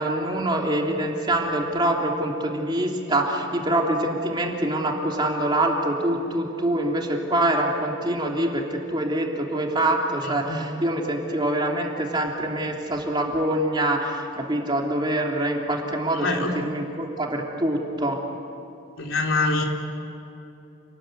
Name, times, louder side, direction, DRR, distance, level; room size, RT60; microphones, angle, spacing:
voice 1, 0.0-18.2, right 1 dB, 20° right, 0 dB, 3.2 m, -25 dB
voice 2, 16.2-16.6 19.0-19.6, left 3 dB, 70° left, 1 dB, 3.7 m, -24 dB
29.0 x 20.5 x 9.5 m, 2.9 s
head